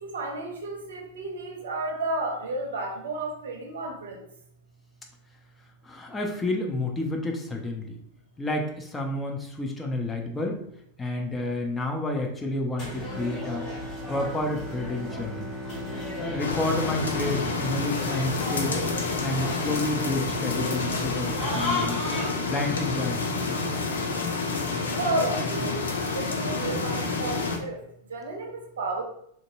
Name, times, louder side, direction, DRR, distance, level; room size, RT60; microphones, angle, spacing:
voice 1, 0.0-4.2 24.9-27.8 28.1-29.0, right 2 dB, 65° right, 1 dB, 0.6 m, -32 dB
voice 2, 5.8-8.0 8.4-10.6 11.0-13.6 14.1-15.5 16.2-18.8 19.2-22.0 22.5-23.3, left 2 dB, 10° left, 1 dB, 0.5 m, -30 dB
sound 1, 12.8-22.3, left 1 dB, 40° left, 1.5 m, -36 dB
Bowed string instrument, 12.8-19.0 19.5-19.6, left 1 dB, 5° right, 0.9 m, -40 dB
sound 2, 16.4-27.6, left 3 dB, 70° left, 0.4 m, -29 dB
3.4 x 2.6 x 2.5 m, 0.71 s
figure-of-eight pair, 90°, 0 cm